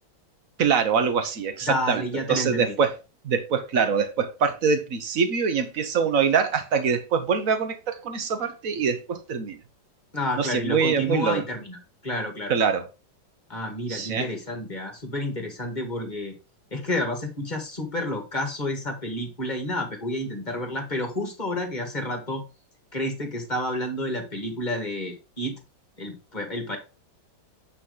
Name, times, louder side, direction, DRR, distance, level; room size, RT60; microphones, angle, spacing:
voice 1, 0.6-2.9 3.2-9.6 10.4-11.4 12.5-12.9 13.9-14.3, right 6 dB, 50° right, 1.2 m, -24 dB
voice 2, 1.7-2.8 10.1-11.8 12.0-12.6 13.5-16.3 16.7-22.4 22.9-25.6 26.0-26.8, left 1 dB, 25° left, 2.0 m, -30 dB
8.9 x 4.3 x 3.8 m
omnidirectional pair, 2.2 m